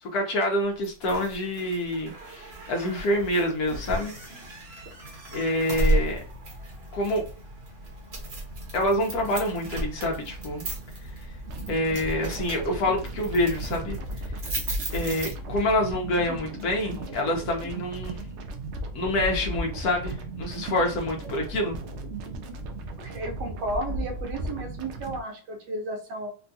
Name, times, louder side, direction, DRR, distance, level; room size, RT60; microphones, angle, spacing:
voice 1, 0.0-4.1 5.3-6.2 6.9-7.3 8.7-10.6 11.7-14.0 14.9-18.2 18.9-21.8, left 1 dB, 65° left, 1 dB, 1.3 m, -27 dB
sound 1, 0.8-15.8, right 2 dB, 45° right, 1.0 m, -34 dB
sound 2, 11.5-25.2, right 1 dB, 65° right, 0.7 m, -36 dB
voice 2, 23.0-26.3, right 2 dB, 85° right, 2 dB, 1.4 m, -33 dB
3.7 x 2.3 x 2.6 m, 0.37 s
omnidirectional pair, 1.8 m